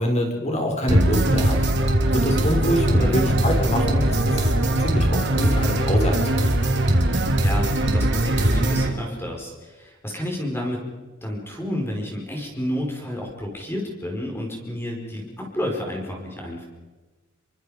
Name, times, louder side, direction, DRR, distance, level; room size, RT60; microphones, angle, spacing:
voice 1, 0.0-1.6 2.1-4.5 4.8-6.6, equal, 35° left, 2 dB, 5.1 m, -25 dB
sound 1, 0.9-8.9, right 1 dB, 60° right, 3.2 m, -21 dB
voice 2, 3.0-3.3 7.4-10.8 11.2-16.6, equal, 10° left, 0 dB, 4.8 m, -30 dB
28.0 x 23.5 x 5.1 m, 1.2 s
head